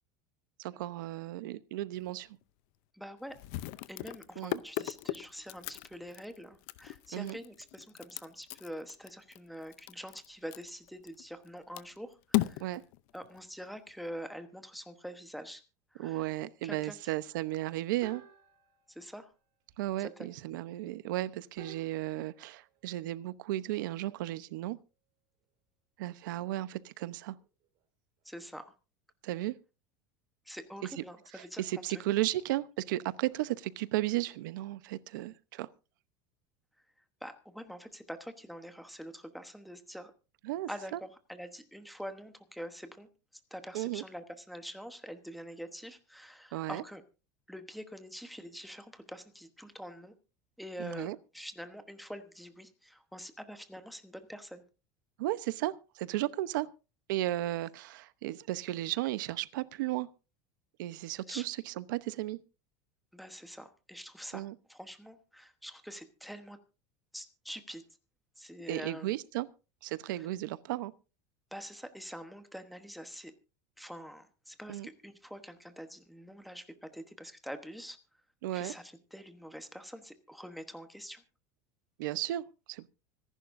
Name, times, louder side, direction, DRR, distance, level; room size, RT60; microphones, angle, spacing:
voice 1, 0.6-2.3 4.4-4.6 7.1-7.4 12.6-12.8 16.0-18.2 19.8-24.8 26.0-27.4 29.2-29.5 31.3-35.7 40.4-41.0 43.7-44.0 46.5-46.8 50.8-51.2 55.2-56.7 57.1-60.1 60.8-62.4 64.3-64.5 68.7-69.5 69.8-70.9 74.7-74.9 78.4-78.7 82.0-82.9, right 16 dB, 85° right, 0.9 m, -34 dB
sound 1, 1.9-2.1 2.4-2.5 3.3-11.5 11.7-13.9, left 18 dB, 55° left, 0.6 m, -37 dB
voice 2, 2.9-3.3 3.9-12.7 13.1-15.6 15.9-16.3 16.6-17.0 18.9-19.3 20.0-20.3 28.2-28.7 30.5-31.6 31.9-32.2 37.2-40.1 40.7-43.1 43.5-47.0 47.5-50.1 50.6-54.6 61.3-61.4 63.1-64.4 64.7-66.6 67.1-67.8 68.4-69.1 70.1-70.3 71.5-73.3 73.8-78.0 78.5-81.2, equal, ahead, 1.1 m, -45 dB
sound 2, 13.1-14.0 18.0-20.1 21.6-25.0 25.3-25.6 26.4-27.9 28.2-28.5, right 5 dB, 45° right, 4.3 m, -57 dB
25.0 x 11.0 x 2.6 m
cardioid pair, 175°, 10 cm